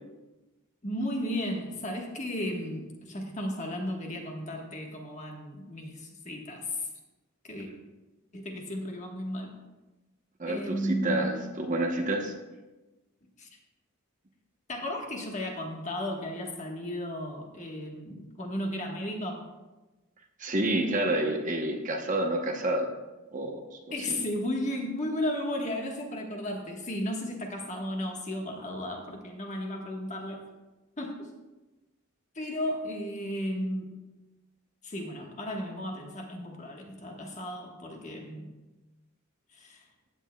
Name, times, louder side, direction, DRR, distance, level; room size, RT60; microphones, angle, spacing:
voice 1, 0.8-6.9 7.5-7.7 8.3-9.5 10.5-11.4 13.4-13.5 14.7-19.4 23.9-30.5 31.0-31.3 32.3-33.9 34.8-38.5 39.5-39.8, left 1 dB, 35° left, 1 dB, 1.3 m, -34 dB
voice 2, 10.4-12.3 20.4-22.9 23.3-23.6 24.1-24.2, right 1 dB, 35° right, 3 dB, 0.9 m, -29 dB
14.5 x 9.0 x 2.3 m, 1.1 s
head